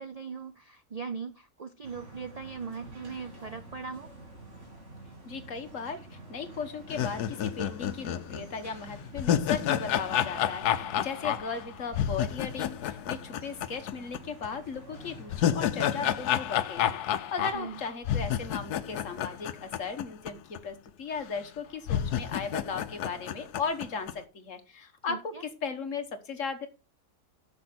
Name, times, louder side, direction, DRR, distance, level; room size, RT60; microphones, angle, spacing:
voice 1, 0.0-4.1 17.5-17.8 25.1-25.4, right 5 dB, 70° right, 10 dB, 0.3 m, -39 dB
sound 1, 1.8-15.5, right 2 dB, 50° right, 3.3 m, -49 dB
voice 2, 5.2-25.3 25.6-26.7, left 5 dB, 55° left, 8 dB, 1.6 m, -37 dB
sound 2, 6.9-14.2 14.4-14.5 15.0-20.3 20.6-20.7 21.4-21.5 21.9-24.1, left 10 dB, 85° left, 1.2 m, -30 dB
9.7 x 6.9 x 4.4 m, 0.30 s
omnidirectional pair, 1.7 m